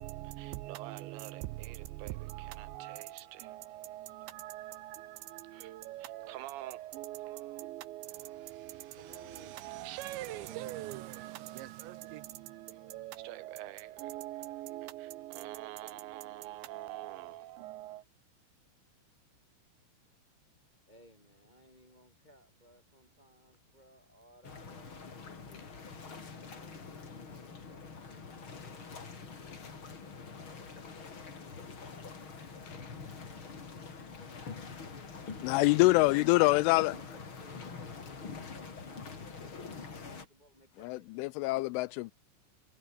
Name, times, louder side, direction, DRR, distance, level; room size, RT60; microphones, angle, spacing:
voice 1, 0.0-18.0, right 16 dB, 80° right, 2.9 m, -43 dB
voice 2, 8.9-9.6 10.2-10.8 20.9-30.8 35.4-41.3, equal, 10° left, 7.1 m, -61 dB
sound 1, 23.3-25.0 25.5-26.5 26.8-26.9 28.1-31.3 31.7-32.0 32.7-33.6 33.9-34.5 35.5-36.4 37.2-37.7, left 6 dB, 60° left, 6.9 m, -60 dB
sound 2, 24.4-40.3, left 5 dB, 30° left, 3.3 m, -45 dB
voice 3, 35.4-36.9 40.8-42.1, left 22 dB, 85° left, 3.0 m, -25 dB
omnidirectional pair, 5.7 m